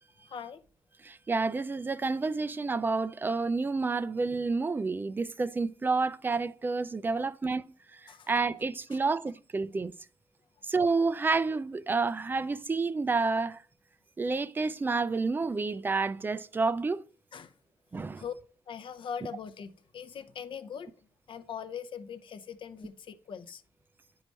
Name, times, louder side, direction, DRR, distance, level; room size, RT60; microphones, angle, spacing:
voice 1, 0.2-0.6 8.1-8.3 8.9-9.0 17.3-17.5 17.9-18.3 18.7-23.6, left 7 dB, 55° left, 0.6 m, -41 dB
voice 2, 1.0-7.6 8.3-9.9 10.7-13.6 14.2-17.0 17.9-18.2, right 4 dB, 20° right, 0.3 m, -29 dB
9.6 x 4.7 x 4.1 m
wide cardioid pair, 155°, 10 cm